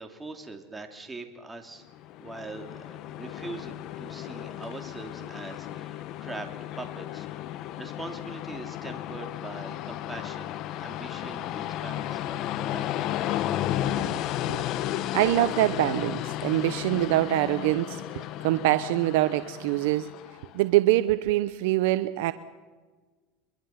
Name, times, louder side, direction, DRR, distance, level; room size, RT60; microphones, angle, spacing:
voice 1, 0.0-1.8 2.2-6.5 6.8-7.3 7.6-13.1, right 3 dB, 10° right, 4 dB, 2.9 m, -42 dB
Train, 1.9-20.6, left 12 dB, 55° left, 1.2 m, -34 dB
voice 2, 13.8-14.1 14.5-14.6 15.1-20.1 20.5-22.3, right 15 dB, 75° right, 13 dB, 0.8 m, -24 dB
23.5 x 22.0 x 5.9 m, 1.4 s
supercardioid pair, 110°, 0 cm